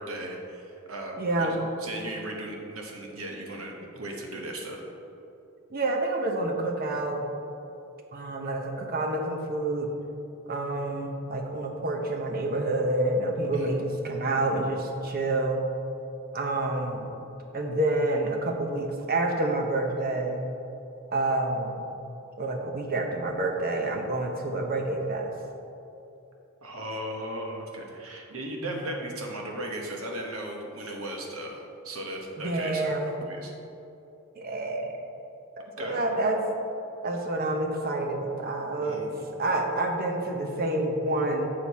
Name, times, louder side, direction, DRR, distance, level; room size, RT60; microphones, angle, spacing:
voice 1, 0.0-1.5 1.8-4.8 13.5-13.8 26.6-32.9 33.2-33.5 35.8-36.0 38.8-39.2, right 1 dB, 70° right, 0 dB, 1.3 m, -37 dB
voice 2, 1.2-1.7 5.7-7.2 8.1-9.9 10.5-15.6 16.3-17.1 17.5-20.4 21.1-21.8 22.4-25.3 28.6-28.8 32.4-33.1 34.4-35.0 35.6-36.4 37.0-39.0 39.3-41.5, right 2 dB, 45° right, 2 dB, 0.9 m, -28 dB
7.5 x 6.6 x 4.2 m, 2.9 s
head